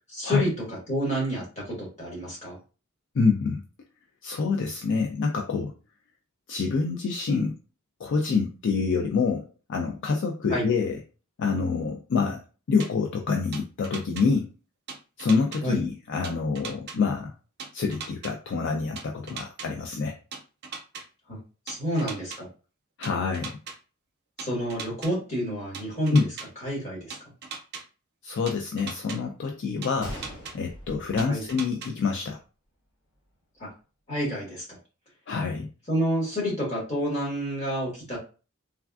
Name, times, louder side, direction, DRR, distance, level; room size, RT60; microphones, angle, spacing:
voice 1, 0.1-2.6 10.5-10.6 15.6-15.8 21.3-21.4 21.7-22.5 24.4-26.2 26.6-27.2 31.3-31.4 33.6-33.7 34.1-34.6 35.9-38.2, equal, 35° left, -4 dB, 1.5 m, -29 dB
voice 2, 3.1-3.6 4.2-5.7 6.5-7.6 8.0-11.0 11.4-12.4 12.7-14.5 15.2-17.3 17.7-20.1 23.0-23.5 26.1-26.3 28.2-30.2 30.5-32.4 35.3-35.7, left 4 dB, 60° left, 3 dB, 0.4 m, -26 dB
sound 1, 12.8-12.9 13.5-14.2 14.9-15.6 16.2-17.0 17.6-18.3 19.0-19.7 20.3-21.0 21.7-22.4 23.0-23.7 24.4-25.1 25.7-26.5 27.1-27.8 28.5-29.2 29.8-30.5 31.2-31.9, right 5 dB, 50° right, 0.6 m, -38 dB
Gunshot gunfire, 30.0-32.0 32.3-32.4 33.1-33.3, equal, 75° left, 1.6 m, -42 dB
3.4 x 2.3 x 2.3 m, 0.34 s
head